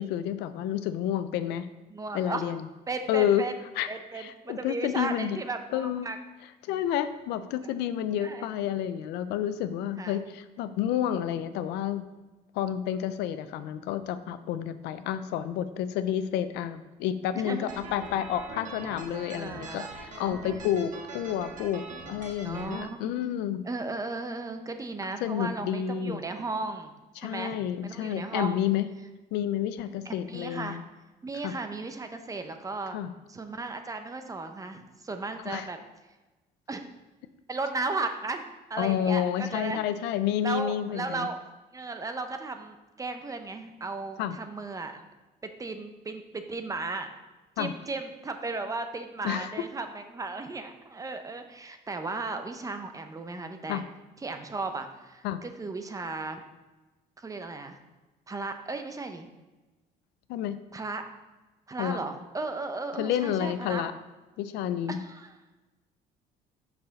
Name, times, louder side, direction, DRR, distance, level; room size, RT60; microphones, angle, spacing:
voice 1, 0.0-1.7 2.1-2.6 3.1-3.4 3.8-3.9 4.1-5.4 5.7-6.1 6.6-12.0 12.5-23.6 25.2-26.2 27.2-28.9 29.3-30.8 31.4-31.5 32.9-33.1 35.4-35.7 38.8-41.3 44.2-44.4 47.6-47.7 49.2-49.5 53.7-53.8 55.2-55.4 60.3-60.6 61.8-62.0 63.0-63.9 64.4-65.0, left 10 dB, 90° left, 12 dB, 0.5 m, -30 dB
voice 2, 1.9-2.4 2.9-3.5 3.9-6.2 7.6-7.8 8.2-8.5 10.0-10.2 17.4-17.8 19.4-20.4 22.4-23.1 23.6-26.9 27.2-28.6 30.0-30.8 31.2-33.0 33.3-35.8 36.7-36.8 37.5-38.4 38.7-39.8 40.4-41.4 41.7-45.0 45.4-47.1 47.6-53.8 54.2-56.4 57.2-57.8 58.3-59.3 60.7-61.0 61.7-63.9 64.9-65.3, right 3 dB, 20° right, 7 dB, 0.6 m, -35 dB
sound 1, 17.7-22.8, right 3 dB, 50° right, 1.3 m, -42 dB
6.0 x 5.4 x 4.0 m, 1.2 s
cardioid pair, 110°, 17 cm